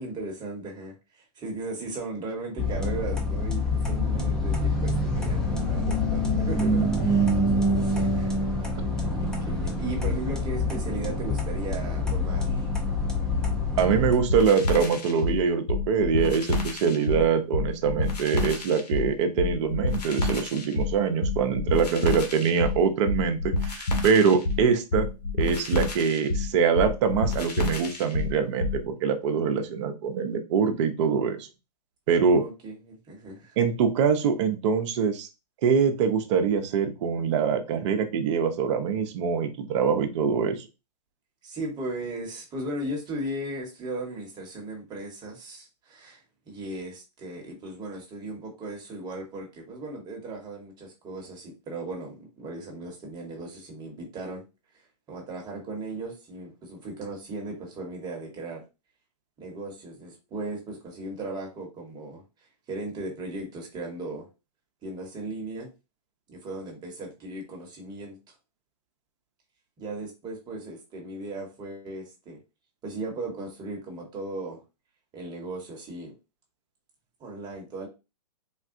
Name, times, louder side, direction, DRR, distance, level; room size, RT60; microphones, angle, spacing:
voice 1, 0.0-8.3 8.6-8.8 9.0-12.7 32.2-33.6 41.4-46.2 46.5-54.4 55.1-58.6 59.4-62.2 62.7-64.3 64.8-65.7 66.3-68.2 69.8-72.4 72.8-74.6 75.1-76.1 77.2-77.9, right 2 dB, 20° right, 0 dB, 1.0 m, -37 dB
sound 1, 2.6-14.1, left 1 dB, 5° left, 0.4 m, -26 dB
voice 2, 13.8-25.1 25.4-31.5 32.1-32.4 33.6-35.3 35.6-40.6, right 6 dB, 45° right, 6 dB, 0.6 m, -24 dB
sound 2, 14.1-28.8, left 2 dB, 75° left, 1.0 m, -28 dB
3.6 x 2.2 x 2.5 m, 0.29 s
hypercardioid pair, 130°, 21 cm